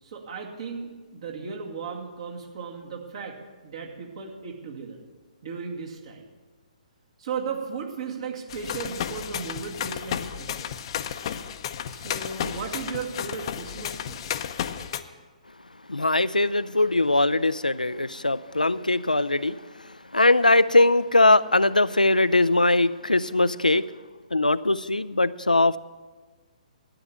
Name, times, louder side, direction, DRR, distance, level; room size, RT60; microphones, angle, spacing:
voice 1, 0.0-3.4 3.6-5.0 5.4-6.2 7.2-10.8 11.9-14.2, right 5 dB, 50° right, 1 dB, 2.2 m, -36 dB
sound 1, 8.5-15.0, left 9 dB, 40° left, 0.7 m, -33 dB
voice 2, 15.9-19.6 20.1-23.9 24.3-25.8, left 2 dB, 85° left, 15 dB, 0.4 m, -21 dB
12.5 x 9.0 x 7.1 m, 1.4 s
figure-of-eight pair, 130°, 4 cm